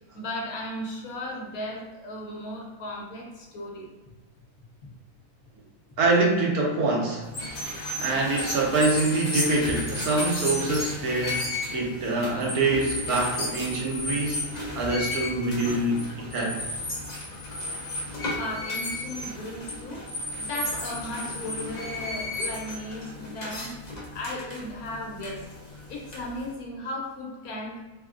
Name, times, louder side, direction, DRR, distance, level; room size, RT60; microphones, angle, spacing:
voice 1, 0.1-3.9 18.3-20.0 20.4-23.7 24.1-25.4 25.9-27.8, left 1 dB, 70° left, -1 dB, 1.2 m, -36 dB
voice 2, 6.0-7.2 8.0-14.4 14.7-16.6, right 2 dB, 75° right, -1 dB, 1.3 m, -25 dB
sound 1, 7.2-26.5, left 1 dB, 40° left, 0.6 m, -33 dB
3.4 x 3.4 x 2.4 m, 1.2 s
omnidirectional pair, 1.6 m